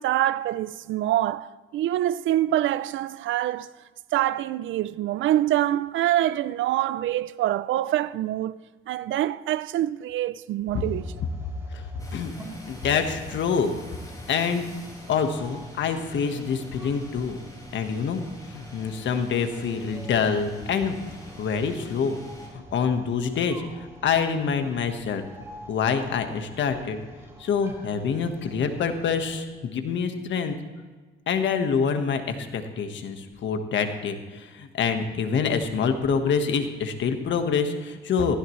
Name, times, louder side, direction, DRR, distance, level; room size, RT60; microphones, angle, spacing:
voice 1, 0.0-3.7 4.1-8.6 8.9-11.0, right 13 dB, 75° right, 0.5 m, -25 dB
sound 1, 10.7-29.4, right 1 dB, 15° right, 3.5 m, -48 dB
sound 2, 12.0-22.5, left 1 dB, 15° left, 5.4 m, -45 dB
voice 2, 12.7-13.7 14.3-14.6 15.1-17.4 17.7-18.2 18.5-22.2 22.5-25.2 25.7-27.1 27.4-30.5 31.3-38.4, left 6 dB, 70° left, 1.5 m, -26 dB
18.5 x 15.0 x 3.2 m
cardioid pair, 90°, 20 cm